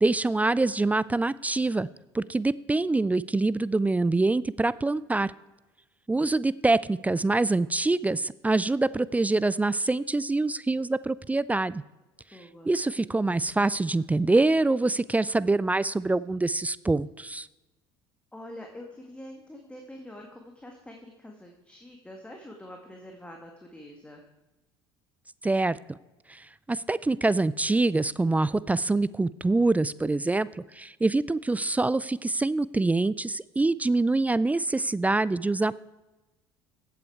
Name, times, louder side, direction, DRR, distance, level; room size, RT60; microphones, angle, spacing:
voice 1, 0.0-1.9 2.1-5.3 6.1-11.8 12.7-17.5 25.4-26.0 26.3-30.5 30.7-35.8, right 2 dB, 10° right, 19 dB, 0.4 m, -25 dB
voice 2, 12.3-12.7 18.3-24.2, left 1 dB, 10° left, 2 dB, 1.9 m, -45 dB
15.0 x 8.3 x 4.7 m, 1.1 s
hypercardioid pair, 65°, 13 cm